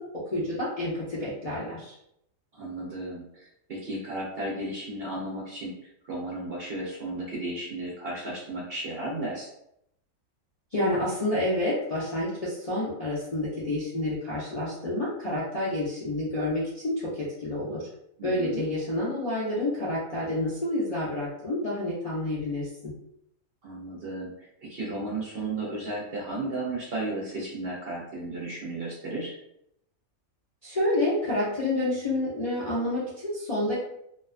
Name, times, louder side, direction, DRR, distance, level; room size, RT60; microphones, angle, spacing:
voice 1, 0.3-1.9 10.7-17.9 18.2-22.9 30.6-33.8, left 1 dB, 45° left, -9 dB, 0.5 m, -29 dB
voice 2, 2.5-9.5 18.2-18.6 23.6-29.4, right 2 dB, 55° right, -4 dB, 0.7 m, -34 dB
2.5 x 2.2 x 2.4 m, 0.77 s
omnidirectional pair, 1.5 m